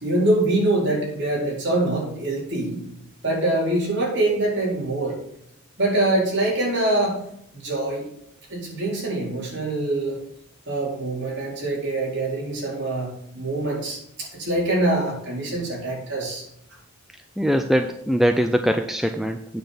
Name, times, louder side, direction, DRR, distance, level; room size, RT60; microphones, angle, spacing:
voice 1, 0.0-2.8 3.2-5.2 5.8-7.2 7.5-8.1 8.5-10.2 10.7-16.4, right 2 dB, 50° right, -4 dB, 4.4 m, -24 dB
voice 2, 17.4-19.6, equal, ahead, 5 dB, 0.4 m, -22 dB
9.1 x 6.0 x 6.8 m, 0.72 s
head